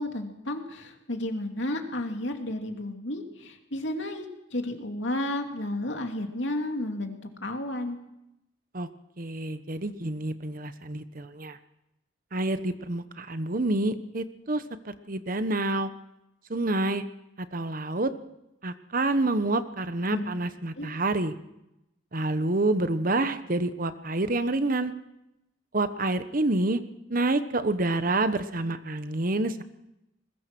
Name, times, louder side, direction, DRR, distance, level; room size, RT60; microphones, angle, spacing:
voice 1, 0.0-4.3 4.5-8.0 20.1-20.2 20.8-20.9, left 1 dB, 70° left, 4 dB, 2.8 m, -32 dB
voice 2, 9.2-11.6 12.3-15.9 16.5-17.0 17.4-18.1 18.6-21.3 22.1-24.9 25.7-26.8 27.1-29.6, right 2 dB, 45° right, 11 dB, 1.1 m, -28 dB
21.5 x 21.0 x 6.1 m, 0.88 s
head